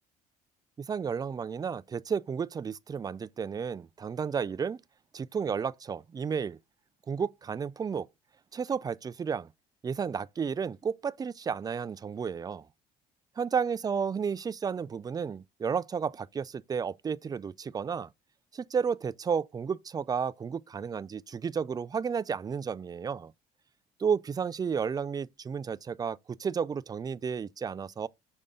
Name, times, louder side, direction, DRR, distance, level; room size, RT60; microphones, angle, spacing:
voice 1, 0.8-4.8 5.1-6.6 7.1-8.1 8.5-9.5 9.8-12.6 13.4-18.1 18.5-23.3 24.0-28.1, right 6 dB, 25° right, 0.4 m, -32 dB
6.7 x 5.3 x 3.7 m
cardioid pair, 95°, 16 cm